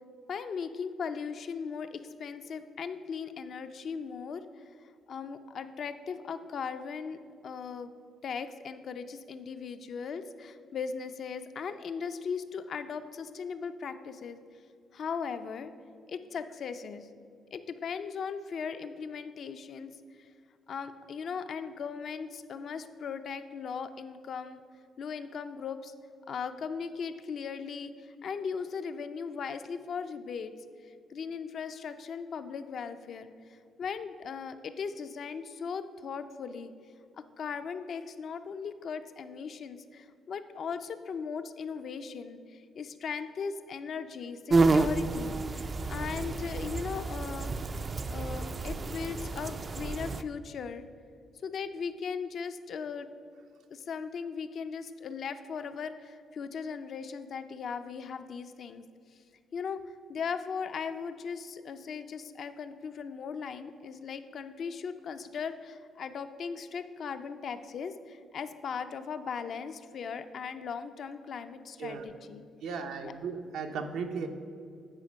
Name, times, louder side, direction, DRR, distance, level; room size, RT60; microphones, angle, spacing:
voice 1, 0.3-4.7 5.1-7.2 7.4-7.9 8.2-14.4 14.9-15.7 16.1-17.1 17.5-19.9 20.7-24.6 25.0-25.9 26.3-30.5 30.9-33.3 33.8-36.7 37.4-47.5 48.1-50.9 51.4-53.1 53.7-58.8 59.5-59.8 60.1-72.4 73.0-73.1, left 6 dB, 60° left, 9 dB, 0.4 m, -38 dB
sound 1, 44.5-50.2, right 3 dB, 35° right, 0.3 m, -30 dB
voice 2, 72.6-74.3, right 5 dB, 85° right, 5 dB, 0.7 m, -36 dB
8.9 x 4.3 x 5.2 m, 2.2 s
cardioid pair, 90°, 0 cm